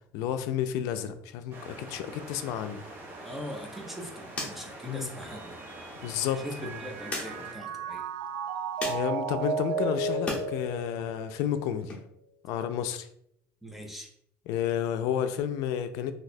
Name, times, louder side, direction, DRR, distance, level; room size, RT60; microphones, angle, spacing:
voice 1, 0.1-2.8 4.8-5.1 6.0-6.8 8.8-12.0 12.4-13.1 14.5-16.1, left 9 dB, 75° left, 10 dB, 0.3 m, -31 dB
sound 1, 1.5-7.5, right 1 dB, 40° right, 0.8 m, -45 dB
voice 2, 3.2-5.6 6.4-6.6 6.8-8.1 13.6-14.1, equal, 5° right, 1 dB, 0.4 m, -41 dB
sound 2, 3.3-10.5 10.8-12.0, left 2 dB, 20° left, 0.8 m, -42 dB
Mallet percussion, 5.3-11.8, right 4 dB, 80° right, 0.6 m, -34 dB
2.7 x 2.2 x 4.1 m, 0.69 s
cardioid pair, 160°, 6 cm